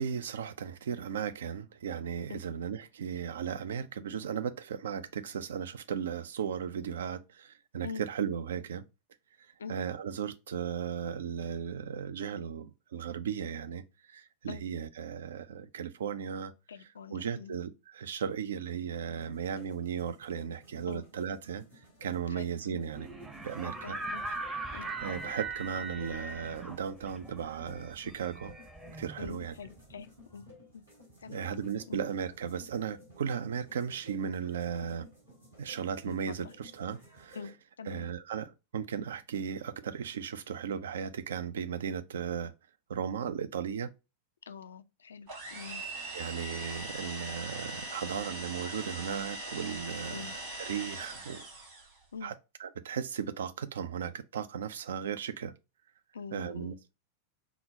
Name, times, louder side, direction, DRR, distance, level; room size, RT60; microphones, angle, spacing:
voice 1, 0.0-8.8 9.7-16.5 17.1-21.6 22.0-23.1 23.4-24.0 25.0-28.5 29.0-29.5 31.3-35.1 35.6-37.4 37.9-42.5 42.9-43.9 46.1-51.5 52.2-52.3 52.6-55.5 56.3-56.9, right 7 dB, 65° right, 0.3 m, -36 dB
voice 2, 16.7-17.6 20.9-21.0 22.3-22.8 23.8-24.2 24.7-24.9 29.2-30.5 30.7-30.8 31.2-32.0 36.1-36.5 37.3-37.5 37.8-38.1 44.5-45.8 50.1-50.4 52.1-52.3 56.1-56.7, left 6 dB, 70° left, 0.3 m, -44 dB
sound 1, 19.2-37.5, left 2 dB, 85° right, 1.9 m, -56 dB
sound 2, 22.9-29.8, right 3 dB, 15° right, 0.6 m, -40 dB
sound 3, 45.3-52.0, right 2 dB, 45° right, 1.6 m, -41 dB
3.8 x 2.0 x 3.8 m
figure-of-eight pair, 90°, 0 cm